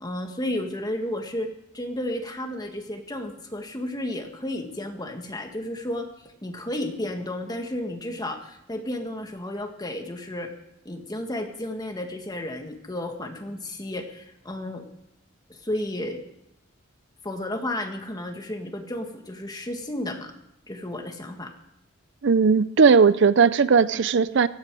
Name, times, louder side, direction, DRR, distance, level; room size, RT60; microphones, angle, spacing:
voice 1, 0.0-10.5 10.8-14.8 15.5-16.2 17.2-20.3 20.7-21.5, left 1 dB, 20° left, 4 dB, 1.8 m, -32 dB
voice 2, 22.2-24.5, right 5 dB, 65° right, 16 dB, 0.5 m, -18 dB
17.0 x 14.0 x 4.8 m, 0.83 s
head